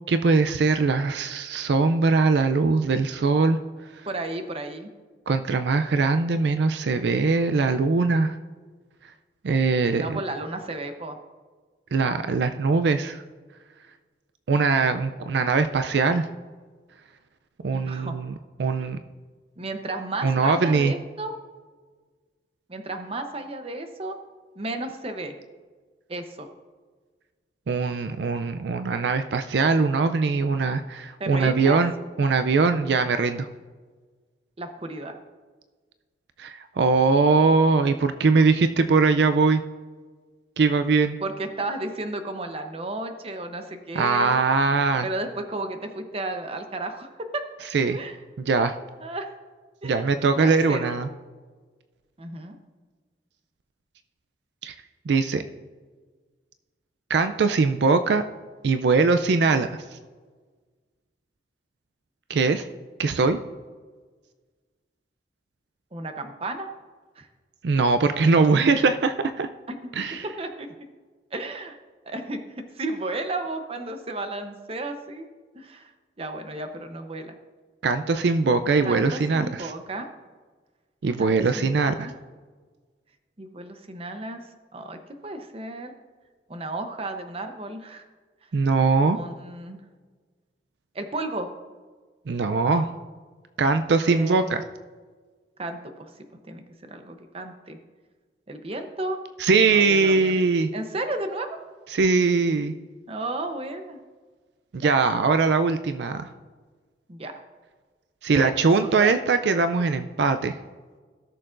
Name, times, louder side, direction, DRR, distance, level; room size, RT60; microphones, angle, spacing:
voice 1, 0.1-3.6 5.3-8.3 9.4-10.2 11.9-13.2 14.5-16.3 17.6-18.3 18.6-19.0 20.2-20.9 27.7-31.9 32.2-33.5 36.4-39.6 40.6-41.2 43.9-45.1 47.7-48.0 48.5-48.7 49.8-51.1 54.6-54.7 55.1-55.4 57.1-58.2 58.6-60.0 62.3-62.6 63.0-63.4 67.6-69.5 70.0-70.2 77.8-79.7 81.0-82.1 88.5-89.2 92.3-92.9 93.6-94.6 99.4-100.7 101.9-102.7 104.7-106.3 108.2-110.5, right 4 dB, 70° right, 9 dB, 0.4 m, -21 dB
voice 2, 4.1-4.9 10.0-11.2 17.7-18.2 18.8-18.9 19.6-21.4 22.7-24.2 24.5-25.3 26.1-26.5 31.2-31.8 34.6-35.2 41.2-44.4 45.0-47.4 47.8-48.2 49.0-49.3 49.8-50.9 52.2-52.6 65.9-66.7 67.2-67.3 69.7-69.8 70.4-70.7 71.3-71.8 72.0-75.3 75.5-75.9 76.2-77.4 78.8-80.1 81.2-82.2 83.4-84.5 84.7-85.9 86.5-88.1 89.1-89.8 90.9-91.5 92.7-92.9 94.1-94.6 95.6-97.8 98.5-99.2 99.7-100.3 100.7-101.6 103.1-104.0 104.8-104.9 107.1-107.3 108.3-108.6 108.8-109.1, right 2 dB, 35° right, 6 dB, 0.8 m, -33 dB
17.0 x 6.7 x 2.5 m, 1.4 s
head